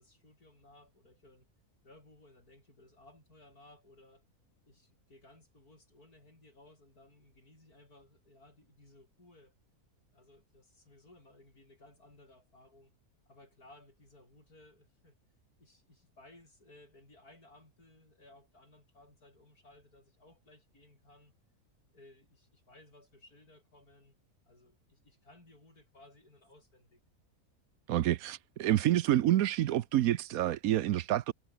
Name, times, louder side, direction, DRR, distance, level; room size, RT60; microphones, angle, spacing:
voice 1, 0.0-1.5 1.8-4.3 4.6-9.6 10.1-12.9 13.3-15.2 15.6-21.3 21.9-24.2 24.5-27.0, left 2 dB, 90° left, 8.5 m, -60 dB
voice 2, 27.9-31.3, right 13 dB, 75° right, 1.1 m, -28 dB
omnidirectional pair, 1.5 m